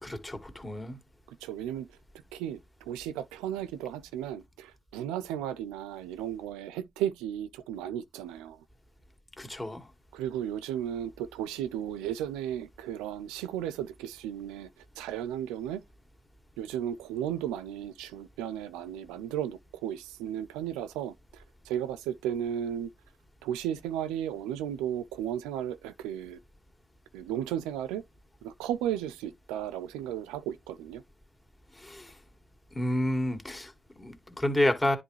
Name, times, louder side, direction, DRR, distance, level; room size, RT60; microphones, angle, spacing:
voice 1, 0.0-1.0 9.4-9.9 31.8-32.1 32.7-35.0, left 1 dB, 20° left, 1.9 m, -30 dB
voice 2, 1.4-1.9 2.3-8.6 10.1-14.7 15.0-15.8 16.6-22.9 23.4-26.4 27.1-28.0 28.4-31.0, right 10 dB, 90° right, 0.4 m, -34 dB
10.0 x 3.6 x 3.1 m
hypercardioid pair, 50°, 0 cm